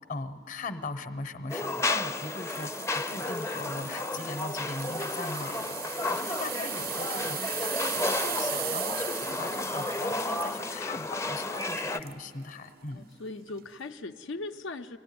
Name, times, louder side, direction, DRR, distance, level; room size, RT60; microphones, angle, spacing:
voice 1, 0.1-13.0, left 3 dB, 45° left, 10 dB, 0.8 m, -39 dB
sound 1, 1.5-12.0, left 2 dB, 15° left, 0.5 m, -32 dB
sound 2, 2.3-12.2 12.7-12.9 13.5-13.6, right 12 dB, 50° right, 0.4 m, -38 dB
voice 2, 12.9-15.0, left 3 dB, 80° left, 6 dB, 0.6 m, -39 dB
25.0 x 18.0 x 9.4 m, 2.8 s
head